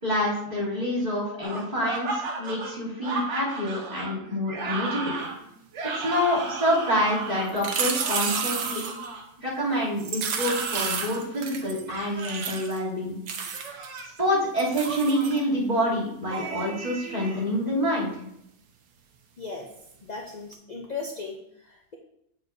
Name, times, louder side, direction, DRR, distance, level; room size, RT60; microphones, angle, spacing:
voice 1, 0.0-5.1 5.9-8.9 9.4-13.1 13.6-13.7 14.2-18.1, equal, 25° right, -9 dB, 3.0 m, -27 dB
sound 1, 1.4-9.2 10.3-11.2 11.9-12.7 13.5-14.2 14.8-15.4 16.3-17.4, right 3 dB, 55° right, 1.0 m, -35 dB
sound 2, 7.5-9.1 10.0-11.8 12.2-12.8 13.3-14.0 14.6-15.4 20.5-20.6, right 6 dB, 80° right, 1.4 m, -31 dB
voice 2, 20.0-22.0, left 4 dB, 50° left, 0 dB, 0.5 m, -37 dB
7.9 x 7.0 x 2.6 m, 0.77 s
omnidirectional pair, 1.7 m